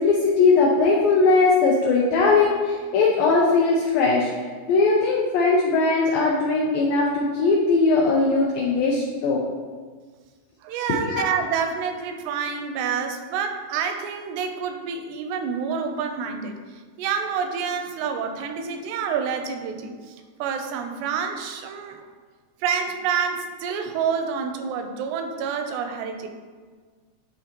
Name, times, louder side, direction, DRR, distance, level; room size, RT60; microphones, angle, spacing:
voice 1, 0.0-9.4 11.0-11.3, left 3 dB, 85° left, -4 dB, 2.0 m, -20 dB
voice 2, 10.6-16.6 17.0-20.1 20.4-22.0 22.6-26.3, right 6 dB, 85° right, 6 dB, 2.7 m, -28 dB
10.5 x 3.8 x 2.9 m, 1.5 s
omnidirectional pair, 4.8 m